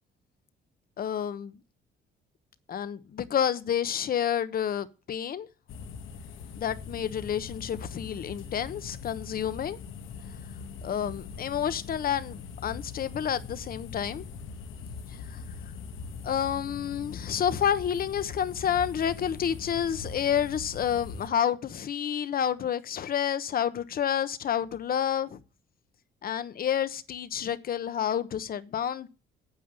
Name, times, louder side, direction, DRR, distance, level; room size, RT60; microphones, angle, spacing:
voice 1, 1.0-1.6 2.7-5.5 6.6-9.8 10.8-14.2 15.3-15.4 16.2-25.4 26.2-29.1, left 9 dB, 50° left, 1.1 m, -29 dB
sound 1, 5.7-21.3, left 5 dB, 80° left, 1.7 m, -41 dB
9.5 x 8.5 x 6.7 m
cardioid pair, 130°, 20 cm